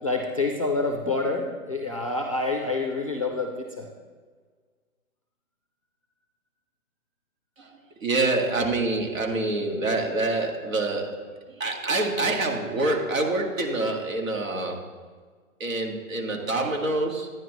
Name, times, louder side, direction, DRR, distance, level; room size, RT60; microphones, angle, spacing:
voice 1, 0.0-3.9, left 3 dB, 25° left, 2 dB, 0.4 m, -27 dB
voice 2, 7.6-14.8 15.6-17.3, right 2 dB, 65° right, 2 dB, 2.0 m, -26 dB
11.0 x 9.9 x 3.1 m, 1.5 s
hypercardioid pair, 170°, 42 cm